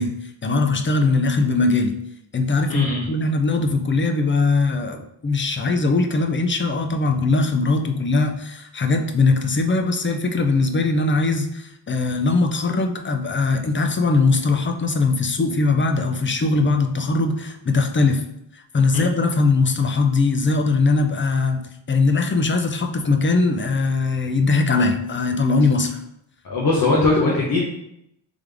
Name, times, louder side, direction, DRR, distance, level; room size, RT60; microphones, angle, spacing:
voice 1, 0.0-2.0 2.3-18.2 18.5-26.0 27.0-27.1, left 3 dB, 25° left, 5 dB, 0.4 m, -20 dB
voice 2, 2.7-3.1 18.9-19.0 26.4-27.6, left 3 dB, 50° left, -4 dB, 0.8 m, -20 dB
3.5 x 3.4 x 3.3 m, 0.79 s
wide cardioid pair, 90°, 48 cm